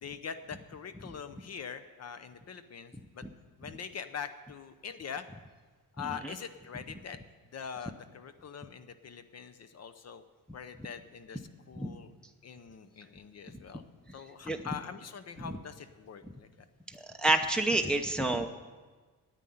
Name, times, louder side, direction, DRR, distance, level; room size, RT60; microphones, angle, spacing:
voice 1, 0.0-3.2 3.6-5.3 6.0-7.2 7.5-10.2 10.5-12.1 12.4-13.8 14.1-16.5, left 7 dB, 45° left, 11 dB, 0.7 m, -43 dB
voice 2, 6.0-6.3 11.8-11.9 14.5-14.6 16.9-18.5, right 2 dB, ahead, 3 dB, 0.7 m, -29 dB
9.5 x 9.2 x 10.0 m, 1.4 s
cardioid pair, 145°, 36 cm